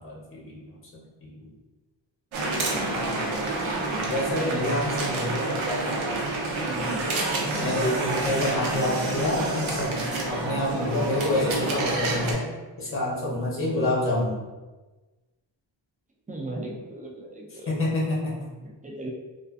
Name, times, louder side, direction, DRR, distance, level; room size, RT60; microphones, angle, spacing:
voice 1, 0.0-1.5 2.7-3.4 3.9-5.5 7.4-12.5 12.8-14.4 17.7-18.5, left 1 dB, 25° left, -4 dB, 0.7 m, -28 dB
sound 1, 2.3-12.3, right 2 dB, 80° right, 0.6 m, -28 dB
voice 2, 6.7-7.1 7.8-8.3 13.6-13.9 16.3-17.8 18.6-19.1, right 2 dB, 20° right, -1 dB, 0.4 m, -37 dB
2.4 x 2.4 x 2.3 m, 1.2 s
cardioid pair, 90°, 48 cm